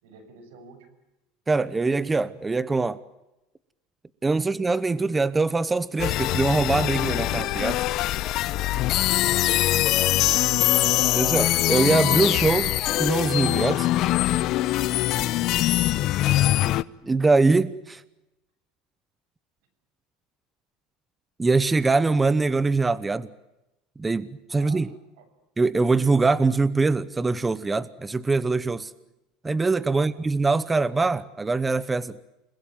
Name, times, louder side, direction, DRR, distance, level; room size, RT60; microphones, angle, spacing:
voice 1, 0.0-0.8 9.0-10.2 14.9-15.1 24.5-24.8 25.2-25.3 29.9-30.1, right 6 dB, 85° right, 10 dB, 7.6 m, -46 dB
voice 2, 1.5-3.0 4.2-7.8 11.1-13.9 17.0-18.0 21.4-23.3 24.0-24.9 25.6-28.9 29.4-32.2, right 3 dB, 15° right, 16 dB, 0.9 m, -23 dB
sound 1, 6.0-16.8, left 15 dB, 55° left, 0.9 m, -23 dB
30.0 x 21.0 x 9.3 m, 0.94 s
supercardioid pair, 130°, 0 cm